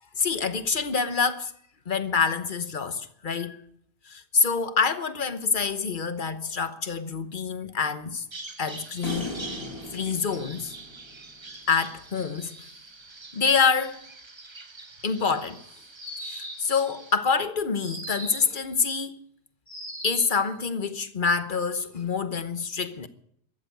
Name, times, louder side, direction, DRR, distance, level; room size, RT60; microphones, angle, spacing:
voice 1, 0.2-1.5 1.9-3.6 4.1-8.2 8.6-9.3 9.9-10.7 11.7-12.5 13.3-14.0 15.0-15.6 16.2-19.2 20.0-23.1, left 5 dB, 35° left, 1.0 m, -26 dB
Bird vocalization bird call bird song, 8.3-17.1, right 3 dB, 25° right, 0.7 m, -44 dB
sound 1, 9.0-11.4, left 1 dB, 65° left, 4.3 m, -37 dB
sound 2, 16.0-16.8 17.8-18.6 19.7-20.4, right 1 dB, 20° left, 5.8 m, -38 dB
14.5 x 13.0 x 6.7 m
omnidirectional pair, 1.7 m